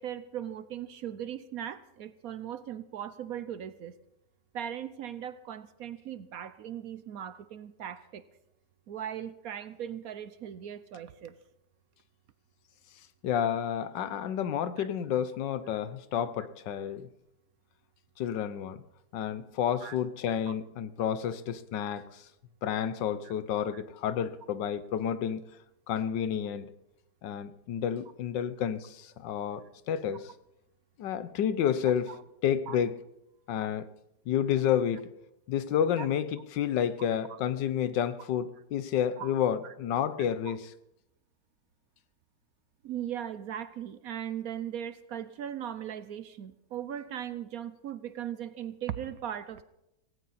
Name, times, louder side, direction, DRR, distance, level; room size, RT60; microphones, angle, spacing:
voice 1, 0.0-3.9 4.5-8.2 8.9-11.4 14.8-14.9 19.8-20.0 23.2-23.3 23.7-23.8 31.8-32.2 32.7-32.8 36.0-36.1 39.2-39.3 39.6-39.7 40.4-40.5 42.8-49.6, right 10 dB, 65° right, 14 dB, 1.0 m, -38 dB
voice 2, 13.2-17.1 18.2-18.8 19.1-22.2 22.6-25.4 25.9-26.7 27.2-30.3 31.0-32.1 32.4-33.0 33.5-33.9 34.3-35.1 35.5-40.7, left 9 dB, 85° left, 14 dB, 1.5 m, -30 dB
17.5 x 16.5 x 4.2 m, 0.86 s
omnidirectional pair, 1.9 m